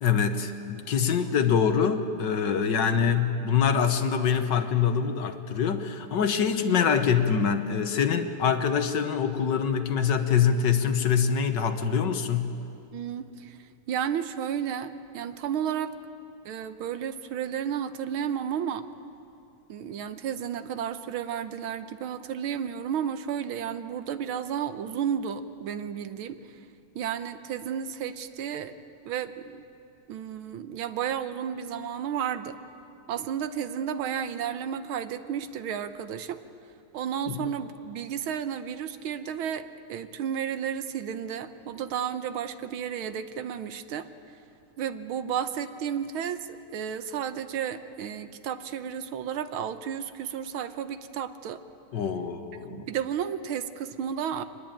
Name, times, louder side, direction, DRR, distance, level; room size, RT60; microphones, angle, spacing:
voice 1, 0.0-12.5 37.3-37.5 51.9-52.9, left 7 dB, 60° left, 8 dB, 1.6 m, -25 dB
voice 2, 12.9-13.6 13.9-15.9 16.4-18.9 19.7-26.4 26.9-28.7 29.0-29.6 30.1-32.6 33.1-36.4 36.9-44.1 44.8-51.6 52.7-54.4, right 8 dB, 75° right, 11 dB, 1.7 m, -32 dB
24.5 x 20.5 x 9.0 m, 2.6 s
omnidirectional pair, 2.4 m